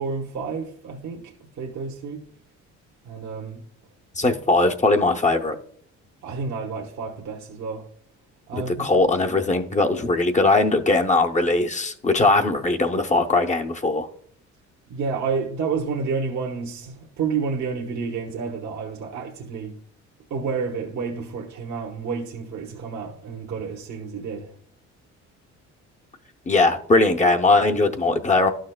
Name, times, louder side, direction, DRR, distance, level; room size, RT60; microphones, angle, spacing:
voice 1, 0.0-2.2 3.0-3.6 4.2-4.3 6.2-7.9 8.5-9.0 14.9-19.7 20.3-24.5, right 5 dB, 70° right, 1.2 m, -30 dB
voice 2, 4.2-5.6 8.5-14.1 26.5-28.5, left 2 dB, 25° left, 0.7 m, -20 dB
12.0 x 6.4 x 2.2 m
cardioid pair, 90°, 30 cm